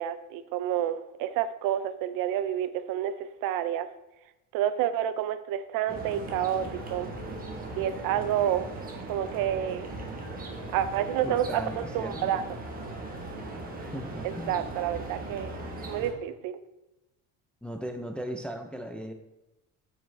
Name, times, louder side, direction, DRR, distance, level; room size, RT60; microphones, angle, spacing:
voice 1, 0.0-3.9 4.5-7.1 7.8-8.7 9.1-9.9 10.7-12.4 14.2-15.5 15.9-16.6, right 10 dB, 75° right, 13 dB, 0.6 m, -29 dB
sound 1, 5.9-16.1, right 2 dB, 25° right, 1.2 m, -39 dB
voice 2, 11.2-12.3 13.8-14.5 17.6-19.1, equal, 5° left, 6 dB, 0.3 m, -37 dB
8.2 x 6.4 x 3.3 m, 0.98 s
cardioid pair, 155°, 34 cm